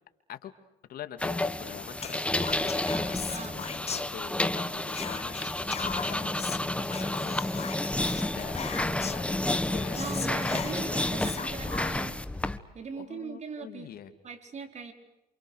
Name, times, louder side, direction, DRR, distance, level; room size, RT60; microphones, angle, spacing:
voice 1, 0.9-3.2 3.5-5.4 5.7-10.0 13.0-14.1, left 10 dB, 60° left, 8 dB, 2.9 m, -44 dB
sound 1, 1.2-12.6, left 1 dB, 5° left, 1.5 m, -30 dB
Whispering, 2.0-4.5 4.9-9.3 9.7-9.8 9.9-12.2, left 7 dB, 40° left, 1.8 m, -39 dB
voice 2, 3.3-3.6 10.0-12.2 12.7-13.9 14.2-14.9, right 5 dB, 40° right, 6 dB, 4.8 m, -40 dB
29.0 x 28.0 x 6.6 m, 0.88 s
cardioid pair, 110°, 17 cm